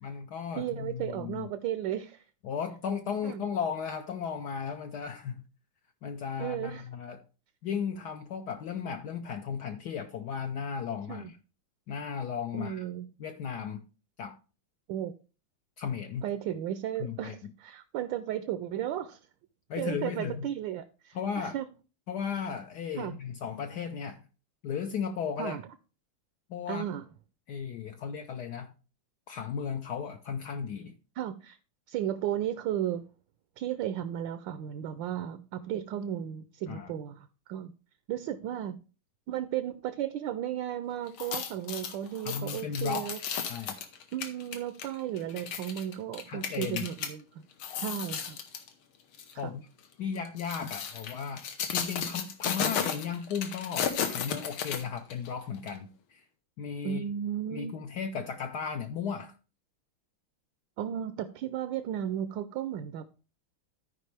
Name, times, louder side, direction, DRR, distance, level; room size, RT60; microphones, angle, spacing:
voice 1, 0.0-1.5 2.4-5.4 6.0-7.2 7.6-11.4 11.9-12.9 13.2-13.8 14.2-14.4 15.8-16.2 17.0-17.5 19.7-20.5 21.1-21.5 22.1-24.2 24.6-25.6 26.5-26.8 27.5-28.7 29.3-30.9 36.7-36.9 42.2-43.1 43.5-43.7 46.3-46.9 49.4-49.7 50.0-56.2 56.6-57.0 57.5-59.4, left 7 dB, 70° left, 1.0 m, -35 dB
voice 2, 0.5-2.2 3.2-3.4 6.4-6.8 11.1-11.3 12.5-13.1 14.9-15.1 16.2-19.2 19.8-21.7 23.0-23.2 25.4-25.6 26.7-27.0 31.2-31.6 31.9-33.0 33.6-37.7 38.1-38.8 39.3-43.2 43.6-43.8 44.1-47.4 47.8-48.4 49.4-49.5 56.8-57.7 60.8-63.0, right 10 dB, 75° right, 1.2 m, -34 dB
sound 1, 41.1-47.1 47.5-48.7 49.1-49.3 50.2-55.3 55.7-55.8, left 7 dB, 90° left, 1.9 m, -34 dB
13.5 x 5.0 x 3.3 m
omnidirectional pair, 2.2 m